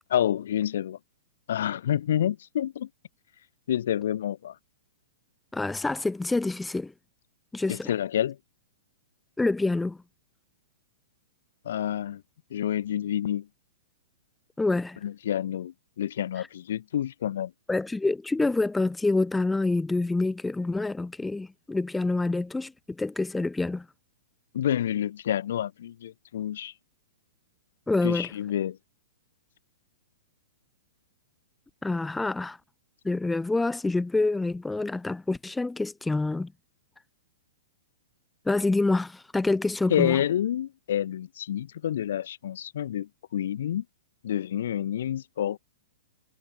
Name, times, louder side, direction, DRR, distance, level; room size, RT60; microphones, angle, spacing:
voice 1, 0.1-1.0 1.5-2.9 3.7-4.5 7.7-8.4 11.6-12.2 12.5-13.5 15.0-17.5 24.5-26.7 28.0-28.8 39.9-43.8 44.2-45.6, left 10 dB, 65° left, 1.1 m, -28 dB
voice 2, 5.5-6.9 7.5-7.9 9.4-10.0 14.6-15.0 16.4-16.5 17.7-22.7 23.0-23.9 27.9-28.3 31.8-32.6 33.0-36.5 38.5-40.2, left 2 dB, 5° left, 0.4 m, -27 dB
hypercardioid pair, 115°, 0 cm